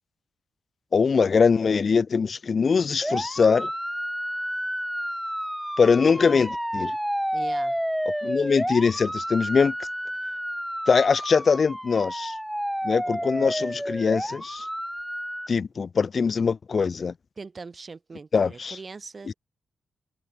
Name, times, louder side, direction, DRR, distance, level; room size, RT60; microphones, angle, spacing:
voice 1, 0.9-3.7 5.8-6.9 8.2-9.7 10.9-12.3 12.8-14.6 15.5-17.1 18.3-18.7, left 5 dB, 45° left, 0.6 m, -22 dB
sound 1, 3.0-15.5, equal, ahead, 0.4 m, -30 dB
voice 2, 7.3-7.8 17.4-19.4, right 4 dB, 35° right, 7.3 m, -41 dB
cardioid pair, 95°, 0 cm